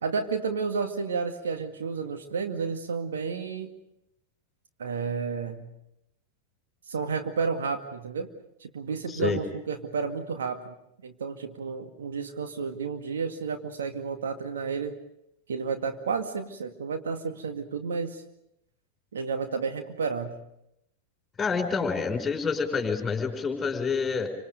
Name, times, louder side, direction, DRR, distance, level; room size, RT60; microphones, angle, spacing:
voice 1, 0.0-3.7 4.8-5.7 6.9-8.3 8.6-10.7 11.0-15.0 15.5-18.2 19.1-20.3, right 5 dB, 65° right, 5 dB, 2.0 m, -31 dB
voice 2, 9.1-9.4 21.4-24.3, left 5 dB, 15° left, 5 dB, 5.1 m, -28 dB
28.5 x 26.0 x 5.3 m, 0.81 s
figure-of-eight pair, 90°, 0 cm